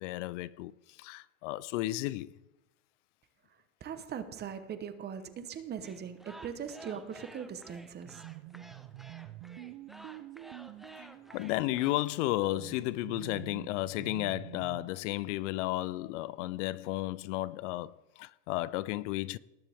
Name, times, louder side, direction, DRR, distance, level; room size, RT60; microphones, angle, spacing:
voice 1, 0.0-2.3 11.0-11.1 11.3-19.4, left 17 dB, 65° left, 0.5 m, -33 dB
voice 2, 3.8-8.2, right 7 dB, 25° right, 1.0 m, -40 dB
sound 1, 5.8-11.9, right 1 dB, ahead, 0.3 m, -53 dB
sound 2, 8.0-14.9, right 15 dB, 50° right, 0.7 m, -47 dB
19.0 x 7.3 x 3.5 m
supercardioid pair, 125°, 39 cm